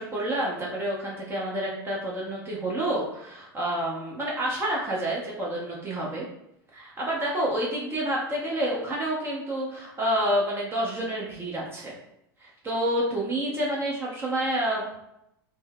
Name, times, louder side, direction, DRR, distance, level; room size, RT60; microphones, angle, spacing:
voice 1, 0.0-6.3 6.7-12.0 12.4-15.0, right 1 dB, 20° right, -4 dB, 0.9 m, -29 dB
3.3 x 2.1 x 3.5 m, 0.80 s
figure-of-eight pair, 85°, 12 cm